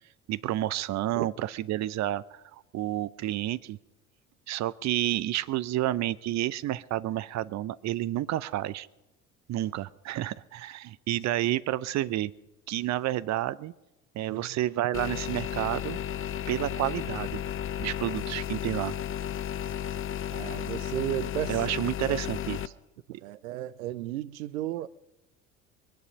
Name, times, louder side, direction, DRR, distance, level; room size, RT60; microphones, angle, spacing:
voice 1, 0.3-3.8 4.5-8.9 9.5-12.3 12.7-13.7 14.1-16.0 16.5-17.4 17.8-18.9 21.5-22.6, right 14 dB, 40° right, 0.7 m, -30 dB
sound 1, 14.9-22.7, left 10 dB, 30° left, 0.8 m, -33 dB
voice 2, 20.3-21.6 22.1-22.2 23.1-24.9, right 14 dB, 70° right, 0.8 m, -34 dB
22.5 x 10.5 x 5.3 m
figure-of-eight pair, 60°, 43 cm